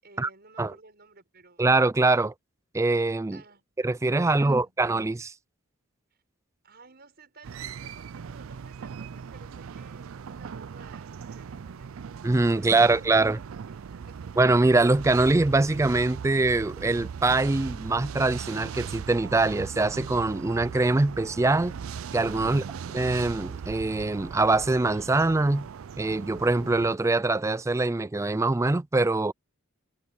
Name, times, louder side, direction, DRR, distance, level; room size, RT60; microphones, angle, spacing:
voice 1, 0.0-1.7 3.3-3.6 4.2-4.8 6.6-12.1 12.5-14.6, right 3 dB, 50° right, 6.0 m, -54 dB
voice 2, 1.6-2.3 2.7-3.4 3.8-5.3 12.2-13.4 14.4-21.7 22.1-22.6 22.9-25.7 26.0-29.3, right 2 dB, 15° right, 0.3 m, -23 dB
sound 1, 7.4-27.0, right 6 dB, 80° right, 0.4 m, -39 dB
head